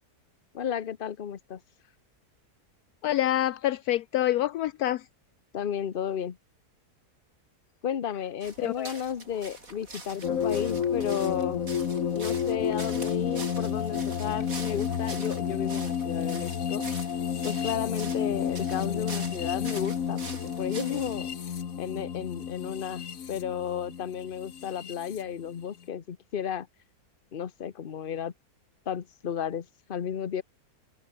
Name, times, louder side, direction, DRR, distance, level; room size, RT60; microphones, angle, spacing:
voice 1, 0.5-1.6 5.5-6.4 7.8-11.6 12.1-16.9 17.4-21.3 21.8-26.7 27.3-28.3 28.9-30.4, left 8 dB, 40° left, 1.0 m, -33 dB
voice 2, 3.0-5.0 8.6-8.9, left 13 dB, 75° left, 1.1 m, -26 dB
sound 1, 8.4-21.3, right 3 dB, 55° right, 4.6 m, -45 dB
sound 2, 9.1-16.4, right 1 dB, 30° right, 7.7 m, -62 dB
sound 3, 10.2-25.2, left 8 dB, 55° left, 1.6 m, -31 dB
open air
omnidirectional pair, 1.7 m